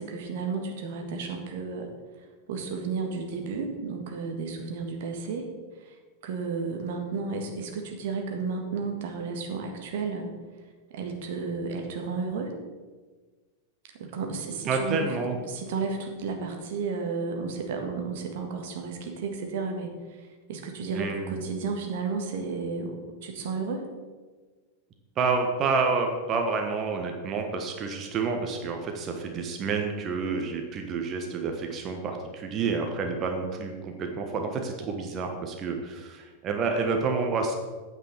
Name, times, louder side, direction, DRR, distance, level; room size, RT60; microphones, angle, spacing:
voice 1, 0.0-1.9 2.2-5.5 5.8-10.3 10.9-12.5 13.9-23.8, right 4 dB, 55° right, 3 dB, 1.8 m, -33 dB
voice 2, 14.7-15.3 20.9-21.4 25.2-37.5, right 4 dB, 30° right, 3 dB, 1.3 m, -29 dB
9.2 x 6.7 x 6.8 m, 1.4 s
figure-of-eight pair, 90°, 0 cm